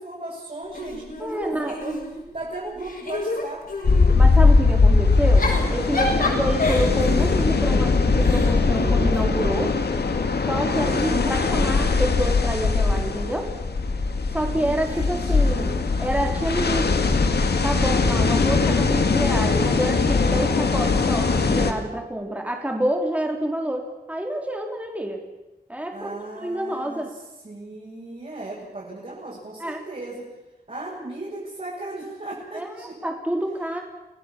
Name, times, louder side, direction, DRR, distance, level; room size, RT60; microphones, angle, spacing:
voice 1, 0.0-2.0 2.3-3.6 6.1-6.3 10.7-12.2 14.5-15.9 25.9-30.3 30.7-32.9, right 2 dB, 45° right, -6 dB, 7.9 m, -37 dB
Giggle / Chuckle chortle, 0.7-2.4 2.8-4.2 5.1-9.6 10.7-12.1, left 2 dB, 60° left, 7.0 m, -30 dB
voice 2, 1.2-1.8 4.1-9.7 10.4-13.5 14.3-15.7 16.0-17.1 17.6-25.2 25.7-27.1 29.6-29.8 32.5-33.8, right 1 dB, 10° right, 2 dB, 3.4 m, -27 dB
sound 1, 3.8-21.7, left 4 dB, 90° left, 2.3 m, -20 dB
28.0 x 18.0 x 7.3 m, 1.0 s
wide cardioid pair, 105°, 17 cm